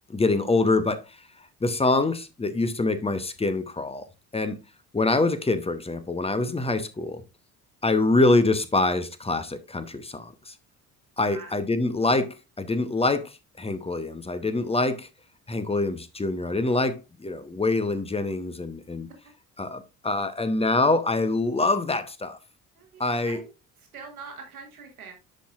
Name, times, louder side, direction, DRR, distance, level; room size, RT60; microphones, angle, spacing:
voice 1, 0.1-1.0 1.6-4.1 4.3-4.6 4.9-7.2 7.8-10.5 11.2-15.1 15.5-19.1 19.6-22.4 23.0-23.4, left 2 dB, 15° left, 0.9 m, -25 dB
voice 2, 22.8-23.5 23.8-25.1, right 5 dB, 85° right, 1.8 m, -43 dB
10.0 x 5.6 x 2.5 m
figure-of-eight pair, 50°, 42 cm